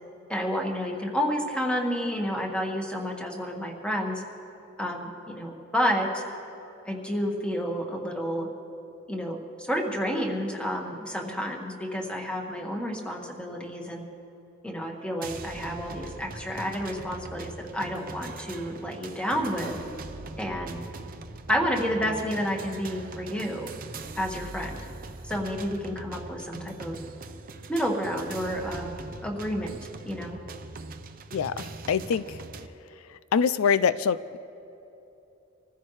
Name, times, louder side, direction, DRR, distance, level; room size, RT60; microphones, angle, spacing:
voice 1, 0.3-4.2 4.8-6.2 6.8-8.5 9.1-14.0 14.6-19.8 20.4-20.8 21.5-23.7 24.2-24.8 25.2-27.0 27.7-28.9 29.2-29.8 30.0-30.4, equal, 5° left, 0 dB, 1.6 m, -30 dB
sound 1, 15.2-32.7, right 3 dB, 45° right, 0.7 m, -41 dB
voice 2, 31.3-32.4 33.3-34.4, left 6 dB, 90° left, 15 dB, 0.4 m, -25 dB
25.5 x 15.0 x 3.2 m, 2.9 s
head